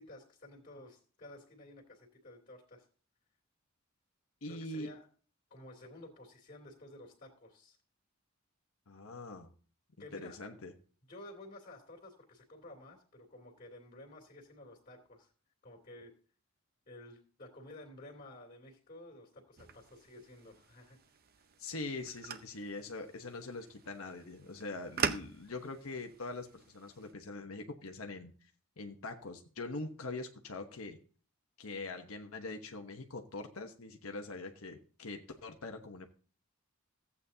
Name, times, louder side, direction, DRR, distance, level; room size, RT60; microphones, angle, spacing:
voice 1, 0.0-2.8 4.5-5.1 5.5-7.8 10.0-10.4 11.1-15.3 15.6-16.1 16.9-21.0, left 1 dB, 40° left, -1 dB, 2.5 m, -53 dB
voice 2, 4.4-4.9 8.9-9.5 10.1-10.7 21.6-28.3 28.8-31.0 31.6-36.1, left 2 dB, 85° left, 4 dB, 1.1 m, -43 dB
sound 1, 19.6-27.1, right 6 dB, 45° right, 0.6 m, -43 dB
14.5 x 8.4 x 2.8 m, 0.42 s
head